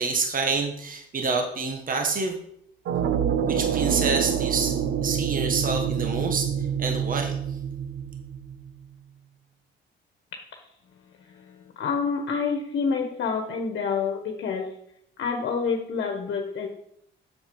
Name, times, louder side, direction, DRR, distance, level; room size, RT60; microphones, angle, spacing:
voice 1, 0.0-2.4 3.5-6.5 6.8-7.4, right 4 dB, 45° right, 4 dB, 1.6 m, -27 dB
sound 1, 2.9-8.7, right 8 dB, 70° right, 0.7 m, -27 dB
voice 2, 10.9-14.7 15.2-16.7, left 5 dB, 65° left, 3 dB, 1.4 m, -28 dB
7.3 x 7.2 x 5.4 m, 0.71 s
cardioid pair, 90°, 20 cm